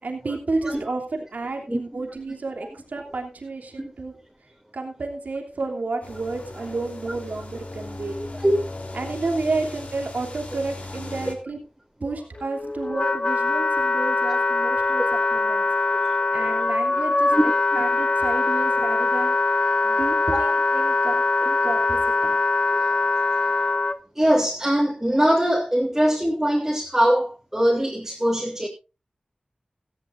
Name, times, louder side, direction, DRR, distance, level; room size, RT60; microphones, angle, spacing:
voice 1, 0.0-4.2 4.7-8.2 8.9-11.6 12.0-15.0 15.3-15.7 16.3-17.3 17.7-19.4 19.8-22.4, right 3 dB, 85° right, 3.0 m, -31 dB
sound 1, 6.0-11.3, left 2 dB, 60° left, 3.5 m, -37 dB
voice 2, 8.3-8.7 12.0-12.1 16.4-16.5 17.3-17.4 20.3-20.4 22.7-22.8 23.4-23.8 24.1-28.7, equal, 15° right, 3.1 m, -22 dB
Wind instrument woodwind instrument, 12.4-24.0, left 3 dB, 40° left, 1.0 m, -22 dB
16.0 x 15.0 x 2.6 m
wide cardioid pair, 55°, 3 cm